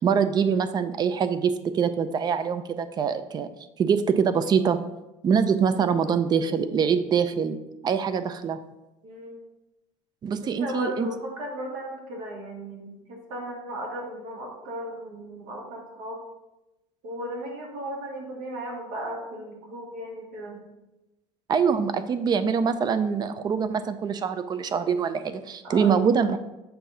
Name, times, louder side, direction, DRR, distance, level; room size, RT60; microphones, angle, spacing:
voice 1, 0.0-3.5 3.8-4.8 5.2-7.6 7.8-8.6 10.2-11.1 21.5-26.4, right 6 dB, 35° right, 11 dB, 0.5 m, -24 dB
voice 2, 5.7-6.6 9.0-9.4 10.4-16.2 17.0-20.6 25.6-25.9, right 1 dB, 85° right, -1 dB, 1.8 m, -36 dB
6.6 x 2.7 x 5.6 m, 0.98 s
cardioid pair, 115°, 12 cm